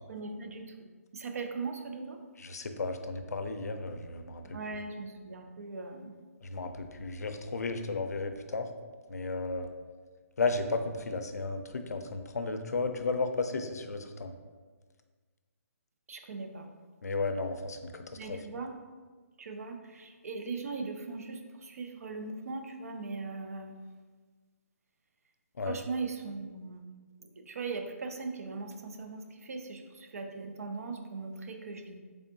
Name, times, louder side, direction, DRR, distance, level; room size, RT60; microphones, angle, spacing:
voice 1, 0.1-0.7 1.1-2.2 4.5-6.1 16.1-16.7 18.1-18.7 19.4-23.8 25.7-26.8 27.2-32.0, right 4 dB, 65° right, 4 dB, 0.5 m, -39 dB
voice 2, 2.4-4.6 6.4-8.7 9.1-9.7 10.4-14.3 17.0-18.4 25.6-25.8, left 3 dB, 90° left, 7 dB, 0.4 m, -34 dB
3.5 x 3.4 x 2.6 m, 1.4 s
hypercardioid pair, 155°, 8 cm